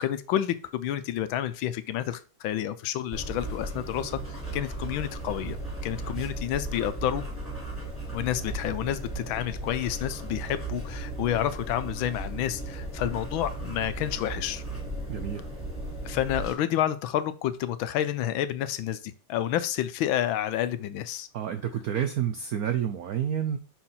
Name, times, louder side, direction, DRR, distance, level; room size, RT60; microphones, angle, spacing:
voice 1, 0.0-5.6 5.8-7.2 8.1-14.6 16.0-21.3, left 11 dB, 75° left, 13 dB, 1.3 m, -29 dB
sound 1, 3.1-16.5, right 2 dB, 5° left, 2.5 m, -36 dB
voice 2, 15.1-15.4 21.3-23.6, right 9 dB, 75° right, 8 dB, 0.8 m, -29 dB
5.8 x 4.5 x 5.6 m, 0.35 s
omnidirectional pair, 2.3 m